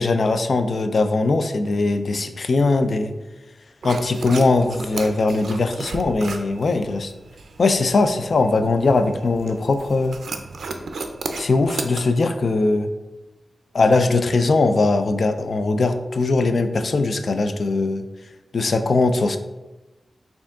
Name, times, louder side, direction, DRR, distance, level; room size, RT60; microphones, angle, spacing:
voice 1, 0.0-3.1 3.8-7.1 7.6-10.2 11.4-12.9 13.7-18.0 18.5-19.4, left 3 dB, 55° left, 9 dB, 0.3 m, -20 dB
sound 1, 3.8-12.0, right 3 dB, 80° right, 0.4 m, -34 dB
4.5 x 2.7 x 3.5 m, 1.1 s
wide cardioid pair, 135°, 0 cm